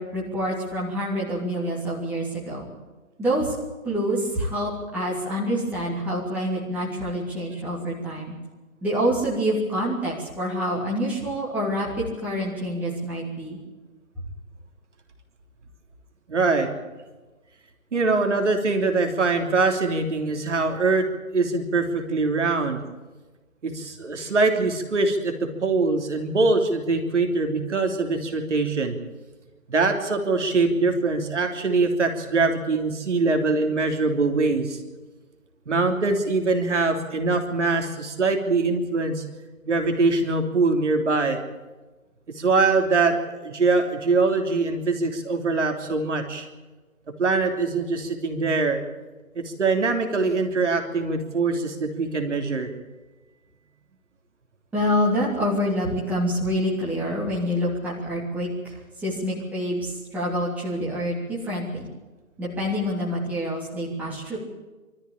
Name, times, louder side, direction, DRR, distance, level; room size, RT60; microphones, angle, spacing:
voice 1, 0.0-2.7 3.2-3.5 3.8-8.3 8.8-13.6 54.7-61.8 62.4-64.4, equal, 5° right, -7 dB, 3.1 m, -27 dB
voice 2, 16.3-16.7 17.9-21.1 21.3-22.8 23.6-29.0 29.7-34.8 35.7-39.2 39.7-41.4 42.4-46.5 47.2-48.8 49.3-52.7, right 3 dB, 55° right, 4 dB, 3.3 m, -23 dB
25.0 x 14.0 x 8.7 m, 1.2 s
figure-of-eight pair, 160°, 43 cm